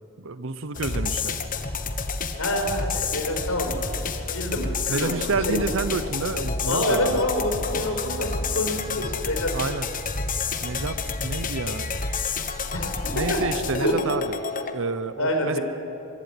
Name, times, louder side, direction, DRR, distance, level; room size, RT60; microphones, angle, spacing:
voice 1, 0.2-1.4 4.9-7.2 9.5-9.9 10.6-11.9 13.1-15.6, right 3 dB, 60° right, 14 dB, 0.8 m, -29 dB
sound 1, 0.7-14.7, left 4 dB, 40° left, 1.2 m, -29 dB
voice 2, 2.4-5.1 6.7-9.5 12.7-13.4 13.7-14.0 15.2-15.6, left 1 dB, 70° left, 3 dB, 5.1 m, -27 dB
23.0 x 12.0 x 9.8 m, 2.8 s
head